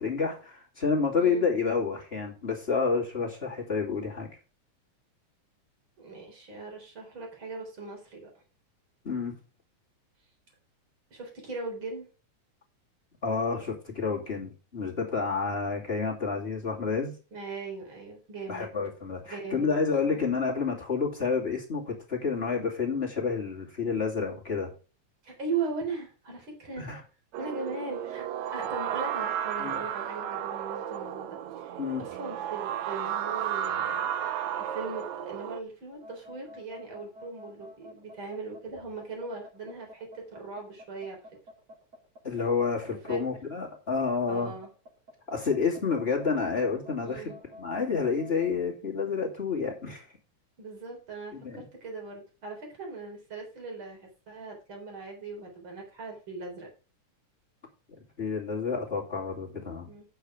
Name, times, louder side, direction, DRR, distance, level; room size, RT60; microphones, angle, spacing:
voice 1, 0.0-4.3 9.0-9.4 13.2-17.2 18.5-24.7 26.8-27.0 29.6-29.8 31.8-32.0 42.2-44.5 45.3-47.3 47.6-50.1 51.3-51.7 58.2-59.9, left 5 dB, 20° left, -2 dB, 2.5 m, -29 dB
voice 2, 6.0-8.3 11.1-12.1 17.3-18.7 19.2-19.8 20.0-20.2 25.2-26.9 27.4-28.2 28.5-34.1 34.5-41.2 43.1-43.2 44.3-44.7 47.0-47.4 50.6-56.7 59.8-60.0, right 4 dB, 40° right, 0 dB, 4.4 m, -39 dB
sound 1, 27.3-35.6, right 10 dB, 75° right, 2.1 m, -33 dB
sound 2, 35.9-48.5, left 1 dB, 25° right, 3.2 m, -50 dB
8.8 x 7.3 x 4.9 m, 0.35 s
omnidirectional pair, 3.4 m